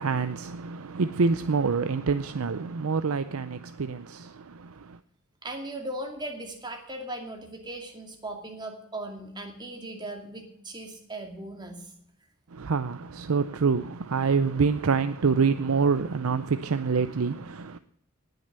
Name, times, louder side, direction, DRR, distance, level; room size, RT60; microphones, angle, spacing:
voice 1, 0.0-5.0 12.5-17.8, right 5 dB, 70° right, 0.6 m, -26 dB
voice 2, 5.4-11.9, right 1 dB, 20° right, 2.4 m, -38 dB
18.5 x 6.6 x 6.7 m
head